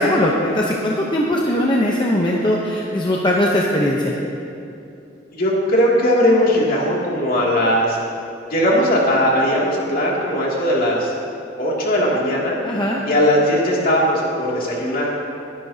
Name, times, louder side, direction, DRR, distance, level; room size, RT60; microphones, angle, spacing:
voice 1, 0.0-4.1 12.6-13.0, left 1 dB, 25° left, -2 dB, 0.8 m, -19 dB
voice 2, 5.3-8.0 8.5-11.1 11.6-12.6 13.1-15.1, equal, 50° left, -4 dB, 2.5 m, -18 dB
20.5 x 11.0 x 2.8 m, 2.7 s
head